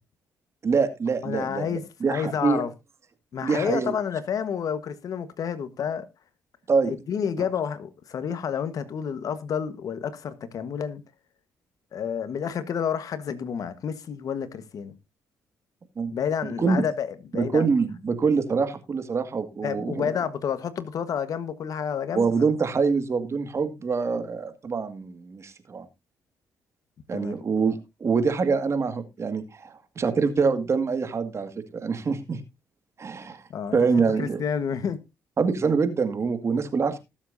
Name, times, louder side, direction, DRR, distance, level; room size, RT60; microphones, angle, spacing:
voice 1, 0.6-2.6 3.4-3.9 6.7-6.9 7.4-7.5 16.0-16.1 16.4-16.8 17.3-20.1 22.2-25.9 27.1-32.4 33.0-33.4 33.7-34.4 35.4-37.0, right 5 dB, 45° right, 2.0 m, -25 dB
voice 2, 1.2-1.8 2.1-2.7 3.3-6.1 6.9-11.0 11.9-14.9 16.1-17.7 19.6-22.3 24.1-24.3 27.1-27.4 33.5-35.0, left 7 dB, 65° left, 1.3 m, -30 dB
19.5 x 7.4 x 2.7 m
supercardioid pair, 65°, 7 cm